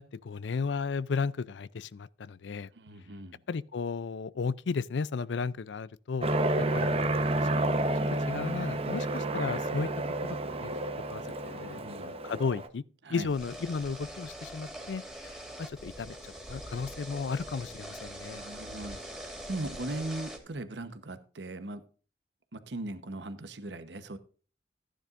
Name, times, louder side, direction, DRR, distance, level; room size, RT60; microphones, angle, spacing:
voice 1, 0.0-2.7 3.5-6.3 6.7-7.5 8.3-9.9 10.2-10.4 10.6-10.7 11.1-12.8 13.1-18.4, left 5 dB, 85° left, 0.5 m, -34 dB
voice 2, 2.7-3.4 11.5-12.1 13.0-13.3 18.2-21.8 22.5-24.2, right 2 dB, 75° right, 1.0 m, -39 dB
Aircraft, 6.2-12.7, right 1 dB, 35° right, 1.0 m, -30 dB
sound 1, 13.2-20.4, equal, 5° right, 2.5 m, -43 dB
15.0 x 10.0 x 2.5 m
head